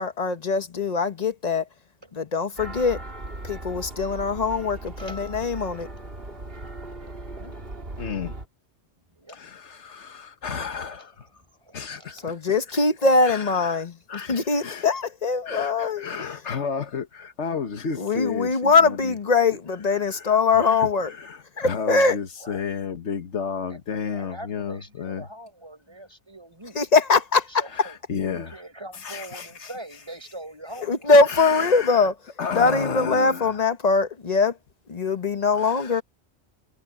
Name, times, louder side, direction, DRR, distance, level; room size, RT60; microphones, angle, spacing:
voice 1, 0.0-1.7 2.1-3.0 3.4-5.9 12.2-16.0 17.9-21.1 21.6-22.2 26.7-27.6 30.9-32.1 32.5-34.6 34.9-36.0, left 4 dB, 35° left, 1.2 m, -22 dB
sound 1, 2.6-8.5, right 2 dB, 55° right, 3.2 m, -38 dB
voice 2, 7.2-7.6 9.1-9.4 9.7-9.8 11.6-12.3 18.1-18.2 22.4-22.7 23.7-23.8 24.1-26.8 27.5-31.1, right 1 dB, 25° right, 7.2 m, -43 dB
voice 3, 8.0-8.3 9.3-11.3 11.7-12.8 13.2-13.8 14.1-14.9 15.4-19.1 20.1-25.2 27.7-28.6 28.9-29.7 31.3-32.1 32.4-33.6 35.5-36.0, left 6 dB, 85° left, 1.6 m, -32 dB
omnidirectional pair, 1.1 m